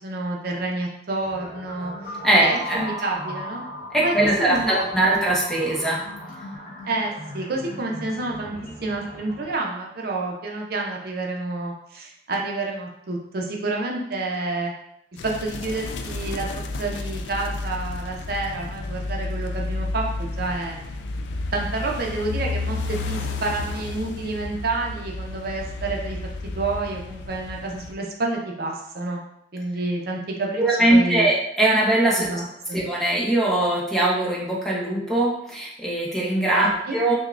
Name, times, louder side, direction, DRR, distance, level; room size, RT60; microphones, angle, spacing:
voice 1, 0.0-3.6 4.0-4.1 4.5-5.2 6.8-8.6 8.8-14.7 15.2-20.8 21.5-26.2 26.4-29.2 29.5-30.6 30.9-31.3 32.3-32.8 36.5-37.0, right 2 dB, 55° right, 0 dB, 0.6 m, -29 dB
sound 1, 1.2-9.6, equal, 50° left, 0.9 m, -37 dB
voice 2, 2.2-2.9 3.9-6.0 30.6-32.3 32.7-37.1, right 1 dB, ahead, -5 dB, 0.8 m, -21 dB
sound 2, 15.2-27.9, left 2 dB, 70° left, 0.3 m, -31 dB
6.2 x 2.2 x 2.4 m, 0.77 s
head